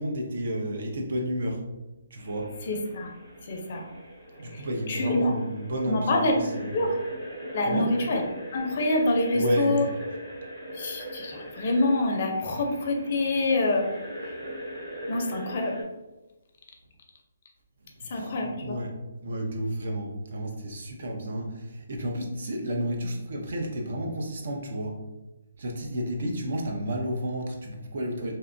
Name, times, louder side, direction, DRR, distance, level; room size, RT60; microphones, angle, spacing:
voice 1, 0.0-1.6 2.1-2.5 4.4-6.8 7.6-7.9 9.3-9.9 17.8-18.9 19.2-25.0 25.6-28.4, equal, 55° right, 1 dB, 0.6 m, -31 dB
sound 1, 2.2-15.8, equal, 25° right, 1.0 m, -41 dB
voice 2, 2.7-3.1 3.5-3.8 4.5-5.3 5.9-6.4 6.7-7.0 7.5-8.2 8.5-9.8 10.7-13.9 14.2-14.3 15.1-15.8 18.1-18.8, left 2 dB, 45° left, 2 dB, 0.5 m, -26 dB
2.7 x 2.2 x 2.5 m, 1.1 s
hypercardioid pair, 165°, 0 cm